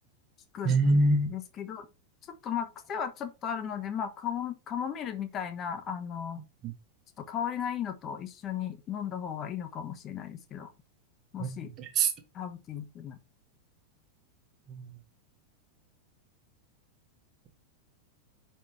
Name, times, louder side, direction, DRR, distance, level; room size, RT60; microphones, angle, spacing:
voice 1, 0.6-1.3 6.6-6.7 11.4-11.5 11.8-12.1 14.7-14.9, right 2 dB, 35° right, 1.8 m, -24 dB
voice 2, 1.3-1.9 2.4-6.4 7.2-10.7 11.3-11.7 12.3-13.2, left 8 dB, 30° left, 1.3 m, -35 dB
11.0 x 4.7 x 3.2 m
figure-of-eight pair, 90°, 0 cm